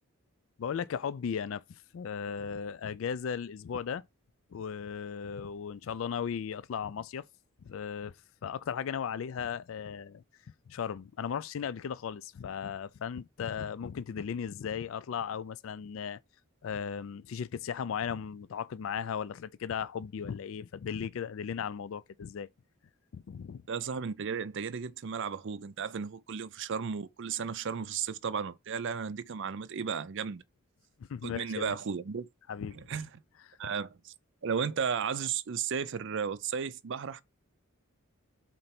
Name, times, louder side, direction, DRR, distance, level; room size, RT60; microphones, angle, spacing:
voice 1, 0.6-1.6 1.9-4.0 4.5-7.2 7.6-8.1 8.4-10.2 10.7-16.2 16.6-22.5 23.1-23.6 31.0-31.7 32.5-32.8, left 7 dB, 65° left, 0.3 m, -36 dB
voice 2, 23.7-30.4 31.2-32.3 32.7-33.1 33.6-34.1 34.4-37.2, right 6 dB, 60° right, 0.5 m, -34 dB
4.4 x 3.9 x 5.7 m
head